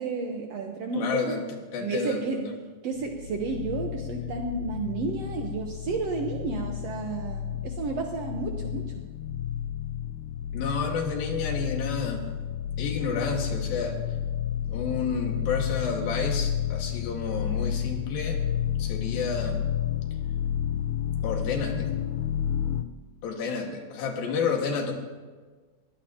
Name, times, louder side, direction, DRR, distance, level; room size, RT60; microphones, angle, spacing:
voice 1, 0.0-1.4 1.8-2.4 2.8-9.0, right 4 dB, 85° right, 2 dB, 1.4 m, -31 dB
voice 2, 1.0-1.4 1.7-2.5 10.5-12.2 12.8-14.0 14.7-18.4 18.8-19.6 21.2-21.9 23.2-24.9, left 5 dB, 70° left, 2 dB, 3.5 m, -30 dB
sound 1, 3.0-22.8, left 9 dB, 85° left, 1.8 m, -31 dB
21.5 x 17.0 x 2.9 m, 1.4 s
omnidirectional pair, 4.4 m